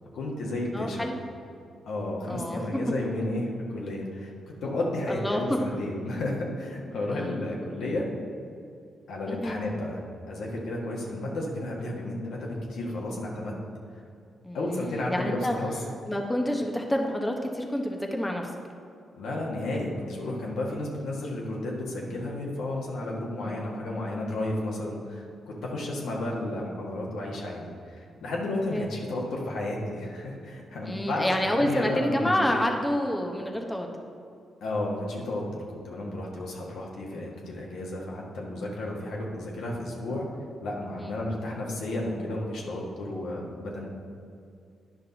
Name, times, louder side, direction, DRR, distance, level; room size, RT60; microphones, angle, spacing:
voice 1, 0.1-1.1 1.9-4.3 4.6-8.0 9.1-13.5 14.5-15.8 19.2-32.3 34.6-40.3 40.6-43.9, left 1 dB, 75° left, -2 dB, 1.5 m, -32 dB
voice 2, 0.7-1.2 2.3-2.6 5.1-5.6 7.1-7.3 9.3-9.6 14.4-15.5 16.1-18.5 23.4-23.6 28.7-28.9 30.9-33.9 41.0-41.1, left 1 dB, 15° left, 2 dB, 1.0 m, -28 dB
10.0 x 5.3 x 4.0 m, 2.4 s
supercardioid pair, 50°, 0 cm